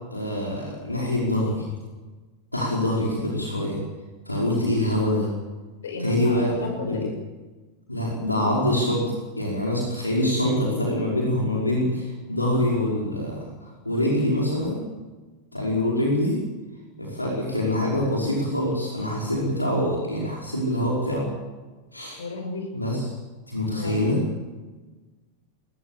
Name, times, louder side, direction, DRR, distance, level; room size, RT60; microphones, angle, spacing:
voice 1, 0.1-1.6 2.5-3.8 4.3-5.3 6.0-6.5 6.9-7.0 7.9-14.8 15.5-16.4 17.0-21.3 21.9-22.2 22.7-23.1 23.5-24.2, left 1 dB, 85° left, -3 dB, 5.4 m, -25 dB
voice 2, 5.8-7.1 10.1-10.2 22.2-22.7 23.7-24.3, left 3 dB, 65° left, 5 dB, 6.2 m, -33 dB
21.0 x 20.5 x 7.5 m, 1.2 s
figure-of-eight pair, 90°, 0 cm